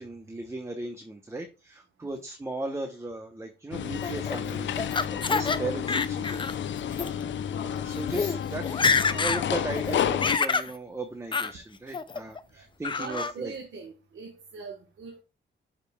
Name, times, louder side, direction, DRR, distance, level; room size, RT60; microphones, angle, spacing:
voice 1, 0.0-6.5 6.8-7.0 7.5-13.5, right 2 dB, 15° right, 0.8 m, -37 dB
sound 1, 3.7-10.4, left 9 dB, 70° left, 0.6 m, -31 dB
Laughter, 4.0-5.6 5.9-6.5 6.9-7.1 7.8-7.9 8.1-8.3 8.6-9.4 9.8-10.7 11.3-11.5 11.9-12.4 12.8-13.3, left 5 dB, 25° left, 0.5 m, -27 dB
voice 2, 13.0-15.2, right 5 dB, 75° right, 1.2 m, -42 dB
11.5 x 5.1 x 2.2 m
wide cardioid pair, 130°, 20 cm